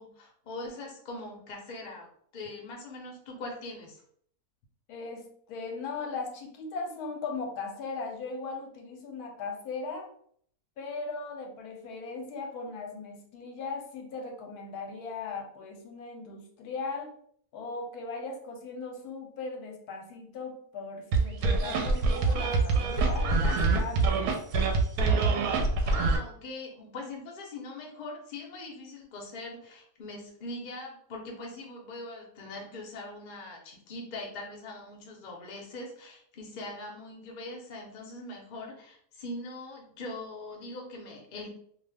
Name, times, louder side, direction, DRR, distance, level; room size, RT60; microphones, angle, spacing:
voice 1, 0.0-2.1 2.3-4.0 25.8-41.5, left 2 dB, 45° left, 0 dB, 0.6 m, -42 dB
voice 2, 4.9-10.1 10.8-17.1 17.5-24.3, left 4 dB, 80° left, 3 dB, 1.1 m, -38 dB
sound 1, 21.1-26.2, right 3 dB, 75° right, 1.0 m, -25 dB
2.6 x 2.2 x 3.3 m, 0.62 s
omnidirectional pair, 1.6 m